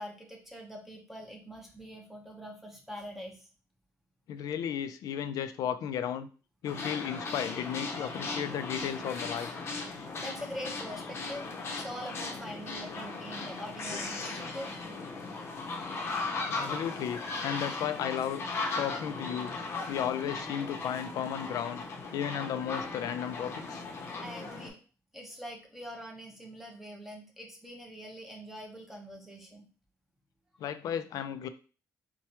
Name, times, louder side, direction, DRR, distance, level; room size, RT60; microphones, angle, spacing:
voice 1, 0.0-3.5 10.2-11.5 11.8-14.7 24.2-24.8 25.1-29.7, equal, 5° right, 0 dB, 0.9 m, -43 dB
voice 2, 4.3-6.3 6.6-9.5 16.5-18.4 18.8-19.5 19.9-21.8 22.1-23.9 30.6-31.5, left 9 dB, 70° left, 10 dB, 0.4 m, -34 dB
sound 1, 6.6-24.7, left 3 dB, 40° left, 0.7 m, -37 dB
4.5 x 2.2 x 2.9 m, 0.36 s
cardioid pair, 135°, 6 cm